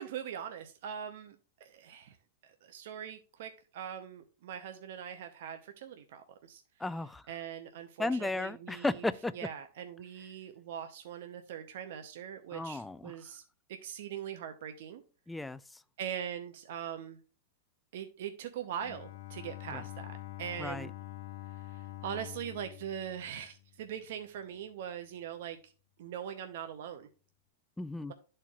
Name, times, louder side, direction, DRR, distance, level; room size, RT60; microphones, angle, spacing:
voice 1, 0.0-2.2 2.4-6.6 7.3-9.1 9.3-13.4 13.7-15.0 16.0-17.2 17.9-20.9 21.7-25.7 26.0-27.1, right 9 dB, 70° right, 0.7 m, -42 dB
voice 2, 6.8-7.2 8.0-9.3 12.5-13.1 15.3-15.6 19.7-19.8 20.6-20.9 27.8-28.1, left 2 dB, 5° left, 0.4 m, -34 dB
Bowed string instrument, 18.8-24.0, left 14 dB, 65° left, 1.0 m, -46 dB
11.0 x 4.4 x 2.4 m
hypercardioid pair, 130°, 0 cm